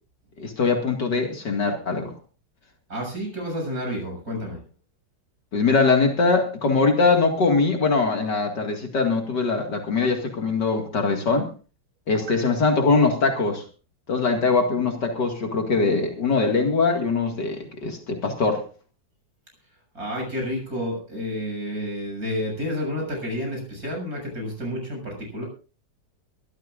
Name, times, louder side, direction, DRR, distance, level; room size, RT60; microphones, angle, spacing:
voice 1, 0.4-2.1 5.5-11.5 12.1-13.6 14.1-18.6, left 4 dB, 65° left, 3 dB, 2.7 m, -22 dB
voice 2, 2.9-4.6 12.1-12.4 19.9-25.4, equal, 50° right, 1 dB, 7.6 m, -30 dB
23.0 x 13.5 x 2.5 m, 0.36 s
omnidirectional pair, 2.0 m